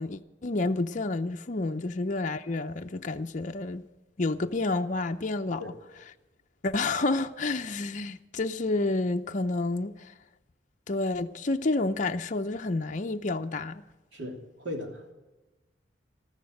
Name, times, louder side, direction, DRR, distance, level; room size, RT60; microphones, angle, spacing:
voice 1, 0.0-3.8 4.2-5.7 6.6-10.1 10.9-13.8, left 2 dB, 40° left, 0.6 m, -29 dB
voice 2, 14.1-15.1, left 1 dB, 65° right, 3.0 m, -38 dB
14.0 x 13.5 x 6.4 m
head